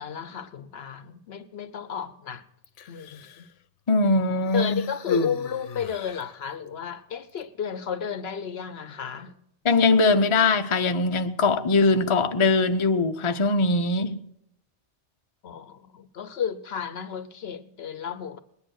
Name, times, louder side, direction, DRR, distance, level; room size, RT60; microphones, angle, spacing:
voice 1, 0.0-2.4 2.9-3.5 4.5-9.3 15.4-18.4, left 7 dB, 65° left, 0.9 m, -33 dB
Human voice, 2.6-3.5 4.4-6.4 7.3-7.4, left 3 dB, 85° left, 1.1 m, -33 dB
voice 2, 3.9-4.8 9.6-14.2, left 3 dB, 30° left, 0.7 m, -21 dB
19.5 x 10.5 x 6.4 m
omnidirectional pair, 1.2 m